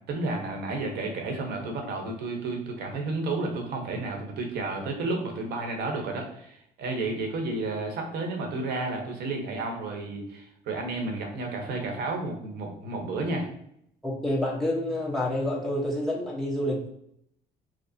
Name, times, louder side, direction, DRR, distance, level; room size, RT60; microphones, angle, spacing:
voice 1, 0.1-13.5, right 2 dB, 75° right, 2 dB, 1.0 m, -31 dB
voice 2, 14.0-16.9, left 1 dB, ahead, -5 dB, 1.1 m, -28 dB
5.1 x 2.0 x 2.7 m, 0.72 s
cardioid pair, 110°, 17 cm